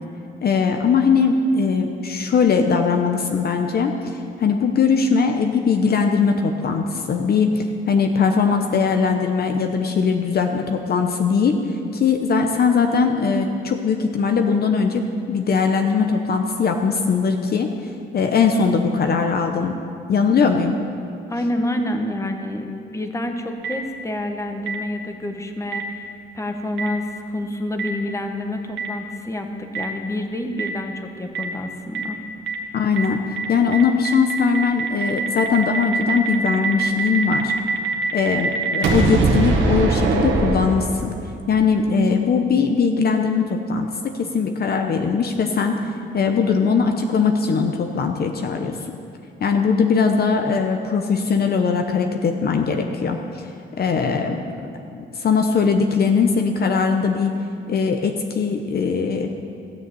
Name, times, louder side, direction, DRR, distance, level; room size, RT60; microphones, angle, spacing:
voice 1, 0.4-11.6 11.9-17.7 18.1-19.8 20.1-20.7 32.7-33.2 33.5-37.5 38.1-41.1 41.5-45.8 46.1-48.8 49.4-53.4 53.8-54.4 54.9-57.3 57.7-59.3, left 5 dB, 50° left, 5 dB, 0.9 m, -20 dB
voice 2, 21.3-32.2, left 1 dB, 15° left, 5 dB, 1.3 m, -28 dB
Boom, 23.6-23.7 24.7-24.8 25.7-25.8 26.8-26.9 27.8-27.9 28.8-28.9 29.7-29.8 30.6-30.7 31.3-31.4 31.9-32.0 32.5-32.6 33.0-33.1 33.4-33.5 33.7-41.3, right 4 dB, 75° right, 1.6 m, -22 dB
16.5 x 6.9 x 7.7 m, 2.6 s
cardioid pair, 90°, 20 cm